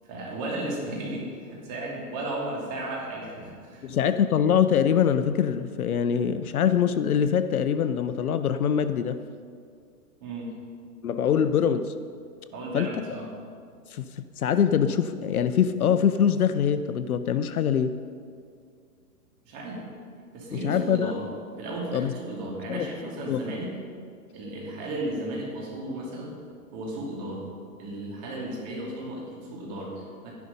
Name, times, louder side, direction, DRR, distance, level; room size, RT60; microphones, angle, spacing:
voice 1, 0.1-3.8 10.2-10.5 12.5-13.3 19.4-19.8 20.3-21.3 21.6-23.7 24.3-26.3 26.7-27.5 27.8-30.3, right 1 dB, 25° right, -2 dB, 2.6 m, -34 dB
voice 2, 3.8-9.2 11.0-11.9 12.7-13.2 13.9-14.0 14.4-17.9 20.5-21.1 21.9-22.1 22.7-22.9 23.3-23.4, left 8 dB, 65° left, 11 dB, 0.7 m, -24 dB
11.5 x 11.0 x 5.5 m, 2.2 s
hypercardioid pair, 160°, 47 cm